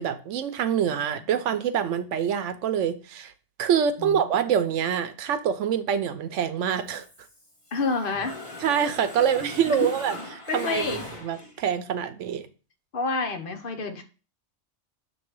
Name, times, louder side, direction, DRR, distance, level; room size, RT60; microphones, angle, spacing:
voice 1, 0.0-3.3 3.6-7.1 8.6-10.2 10.5-12.5, right 8 dB, 90° right, 1.0 m, -25 dB
voice 2, 1.0-1.4 4.0-4.3 7.7-8.4 9.7-9.8 10.5-11.0 12.9-14.0, left 3 dB, 50° left, 1.0 m, -29 dB
Mechanisms, 6.9-7.8 8.1-11.7, left 1 dB, 25° left, 1.3 m, -40 dB
6.5 x 3.2 x 4.6 m
omnidirectional pair, 1.2 m